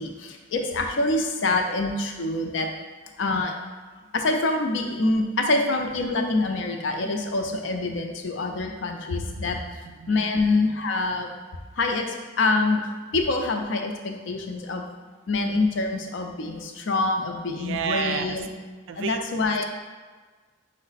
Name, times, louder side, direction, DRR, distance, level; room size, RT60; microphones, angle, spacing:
voice 1, 0.0-2.7 3.2-3.5 4.1-9.6 10.1-11.4 11.8-12.8 13.1-14.8 15.3-18.5 19.0-19.7, left 2 dB, 70° left, 3 dB, 0.5 m, -25 dB
voice 2, 9.8-10.4 17.5-18.4 18.9-19.2, right 7 dB, 90° right, 8 dB, 0.3 m, -30 dB
5.7 x 2.1 x 4.0 m, 1.4 s
head